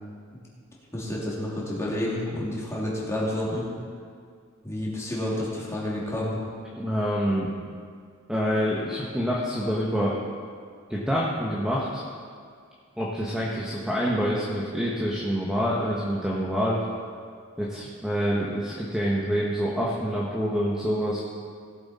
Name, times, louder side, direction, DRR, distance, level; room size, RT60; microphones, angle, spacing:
voice 1, 0.9-3.7 4.6-6.4, left 1 dB, 15° left, -6 dB, 2.7 m, -29 dB
voice 2, 6.8-7.5 8.3-10.2 10.9-12.0 13.0-16.8 17.6-21.2, equal, 5° right, -5 dB, 1.2 m, -26 dB
17.0 x 7.9 x 4.2 m, 2.1 s
head